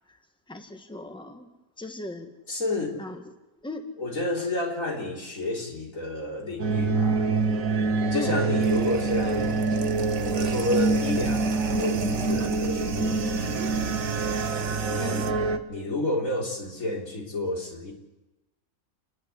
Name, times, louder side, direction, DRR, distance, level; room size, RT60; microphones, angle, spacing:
voice 1, 0.5-1.5 1.8-2.3 3.0-3.2 3.6-3.9 8.1-8.4 15.0-15.6, left 1 dB, 5° left, 6 dB, 1.5 m, -37 dB
voice 2, 2.5-3.0 4.0-7.3 8.1-9.8 10.2-14.0 14.9-15.2 15.7-17.9, left 2 dB, 65° left, -1 dB, 4.2 m, -30 dB
sound 1, 6.6-15.6, right 4 dB, 70° right, 1.5 m, -26 dB
sound 2, 8.6-15.3, right 5 dB, 55° right, 1.4 m, -38 dB
28.5 x 10.5 x 9.9 m, 1.1 s
omnidirectional pair, 1.5 m